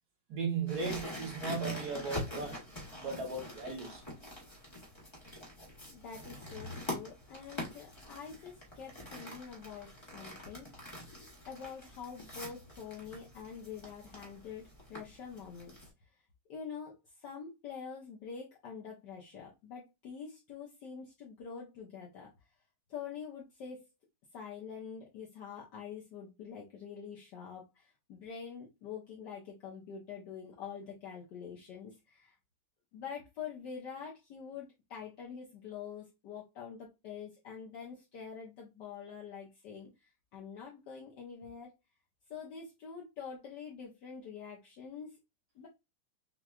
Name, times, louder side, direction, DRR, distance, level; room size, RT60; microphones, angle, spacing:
voice 1, 0.3-2.6 3.0-4.0, right 4 dB, 60° right, 1.5 m, -36 dB
sound 1, 0.7-15.9, left 1 dB, 20° left, 0.8 m, -45 dB
voice 2, 5.9-10.8 11.5-15.9 16.5-22.3 22.9-23.9 24.3-32.3 32.9-41.7 42.3-45.2 45.5-45.7, left 6 dB, 65° left, 1.4 m, -46 dB
6.0 x 2.3 x 2.3 m
omnidirectional pair, 2.1 m